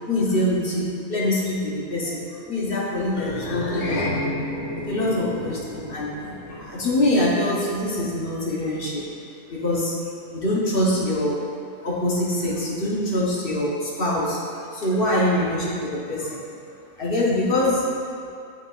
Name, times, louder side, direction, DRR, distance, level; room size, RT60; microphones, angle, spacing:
voice 1, 0.1-2.2 2.5-4.0 4.9-9.0 9.5-10.0 10.3-11.4 11.8-16.4 17.0-17.8, left 1 dB, 55° left, -6 dB, 1.3 m, -24 dB
sound 1, 3.1-7.7, left 1 dB, 75° left, 1.1 m, -31 dB
9.0 x 4.5 x 2.5 m, 2.5 s
omnidirectional pair, 1.2 m